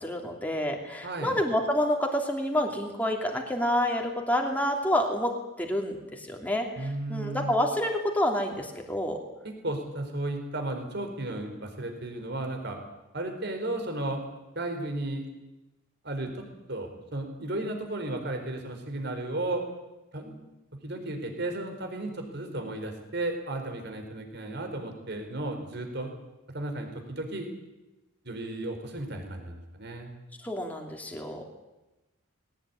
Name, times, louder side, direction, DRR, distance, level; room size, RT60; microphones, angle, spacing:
voice 1, 0.0-9.2 30.4-31.4, left 1 dB, 5° left, 1 dB, 2.8 m, -28 dB
voice 2, 1.0-1.3 6.8-7.6 9.4-12.8 13.1-14.2 14.5-15.2 16.0-16.4 16.7-19.6 20.1-20.4 20.8-26.1 26.5-27.5 28.2-30.1, right 2 dB, 50° right, 4 dB, 4.6 m, -34 dB
20.0 x 18.0 x 9.8 m, 1.0 s
head